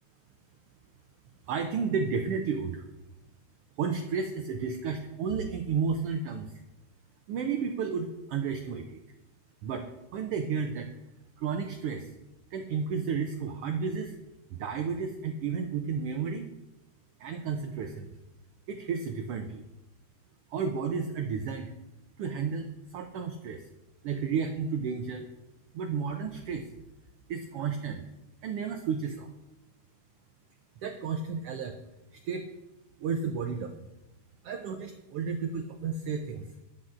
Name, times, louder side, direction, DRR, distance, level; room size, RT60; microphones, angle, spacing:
voice 1, 1.5-2.8 3.8-6.5 7.3-9.0 9.6-9.9 10.1-10.9 11.4-12.1 12.5-14.1 14.5-16.5 17.2-18.1 18.7-19.6 20.5-21.7 22.2-23.6 24.0-25.3 25.7-26.6 27.3-28.0 28.4-29.3 30.8-31.8 32.1-32.5 33.0-33.8 34.4-36.6, right 6 dB, 90° right, 6 dB, 1.2 m, -32 dB
11.5 x 10.5 x 2.5 m, 0.97 s
omnidirectional pair, 3.3 m